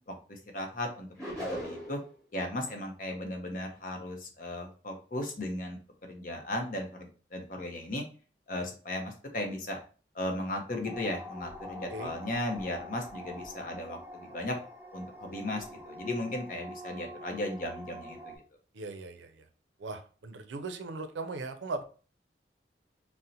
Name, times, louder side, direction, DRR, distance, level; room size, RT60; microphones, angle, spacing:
voice 1, 0.1-2.0 2.3-5.8 6.1-8.0 8.5-9.8 10.1-14.6 14.9-18.3, left 1 dB, 45° left, 3 dB, 0.6 m, -36 dB
sound 1, 1.2-2.1, equal, 10° left, 1.2 m, -37 dB
sound 2, 10.8-18.4, equal, 10° right, 0.4 m, -45 dB
voice 2, 18.7-19.5 19.8-21.8, right 3 dB, 85° right, 8 dB, 0.5 m, -38 dB
2.8 x 2.0 x 3.8 m, 0.38 s
head